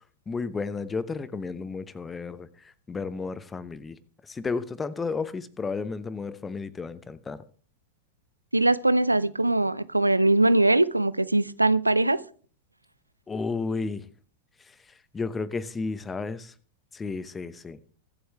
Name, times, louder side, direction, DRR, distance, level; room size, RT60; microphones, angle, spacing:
voice 1, 0.3-2.5 2.9-4.0 4.3-7.4 13.3-14.0 15.1-16.5 16.9-17.8, left 4 dB, 15° left, 0.9 m, -32 dB
voice 2, 8.5-12.2, right 2 dB, 85° right, 0.5 m, -21 dB
23.5 x 7.9 x 3.4 m
figure-of-eight pair, 90°, 0 cm